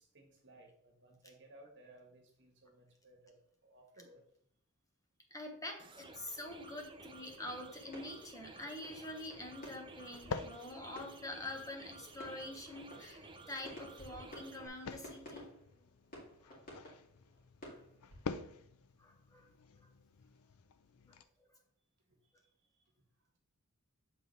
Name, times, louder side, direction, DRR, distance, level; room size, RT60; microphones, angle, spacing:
voice 1, 0.0-3.4 3.6-4.2 22.2-22.9, right 1 dB, 55° right, 1 dB, 1.3 m, -61 dB
voice 2, 5.3-15.5 16.4-16.5 17.6-17.8 19.0-19.5 21.1-21.5, left 1 dB, 15° left, 2 dB, 1.0 m, -46 dB
sound 1, 5.8-14.7, right 3 dB, 20° right, 0.5 m, -54 dB
sound 2, 7.9-8.6 8.8-18.7, equal, 45° left, 2.2 m, -54 dB
sound 3, 8.8-21.2, left 5 dB, 70° left, 0.5 m, -49 dB
7.2 x 4.0 x 3.2 m, 0.65 s
head